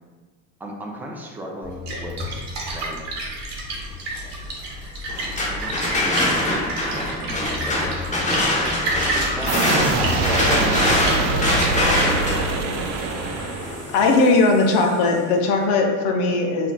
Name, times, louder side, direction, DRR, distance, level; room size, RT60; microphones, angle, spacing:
voice 1, 0.6-2.4 2.7-3.1 5.5-11.5 12.0-12.2, equal, 5° right, -1 dB, 0.3 m, -34 dB
Splash splatter, 1.6-12.2, right 1 dB, 35° right, 1.0 m, -30 dB
sound 1, 5.1-14.9, left 1 dB, 15° left, 0.8 m, -24 dB
sound 2, 9.5-14.1, right 3 dB, 60° right, 0.6 m, -24 dB
voice 2, 13.9-16.7, left 3 dB, 65° left, 2 dB, 0.7 m, -18 dB
3.8 x 2.6 x 2.2 m, 1.4 s
hypercardioid pair, 75°, 45 cm